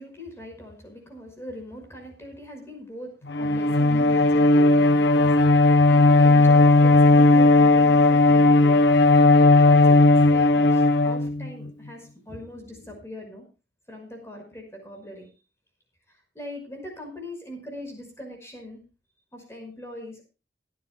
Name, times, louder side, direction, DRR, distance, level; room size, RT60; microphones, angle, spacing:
voice 1, 0.0-8.9 9.4-13.4 13.9-15.3 16.1-18.8 19.3-20.2, left 1 dB, 15° left, 3 dB, 5.5 m, -41 dB
Bowed string instrument, 3.3-11.7, left 2 dB, 75° left, 1.2 m, -16 dB
26.0 x 10.5 x 2.2 m, 0.31 s
head